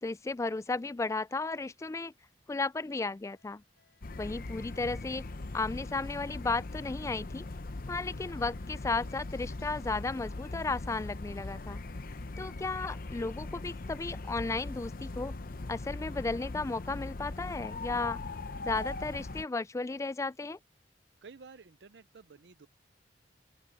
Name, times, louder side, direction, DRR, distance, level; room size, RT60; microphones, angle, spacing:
voice 1, 0.0-2.1 2.5-3.6 4.2-5.3 5.5-7.5 7.9-11.8 12.4-15.3 15.7-18.2 18.6-20.6, left 3 dB, 15° left, 0.3 m, -34 dB
sound 1, 2.8-11.3, left 6 dB, 70° left, 6.4 m, -74 dB
sound 2, 4.0-19.4, left 2 dB, 55° left, 0.8 m, -40 dB
voice 2, 21.2-22.7, right 5 dB, 70° right, 0.6 m, -52 dB
open air
head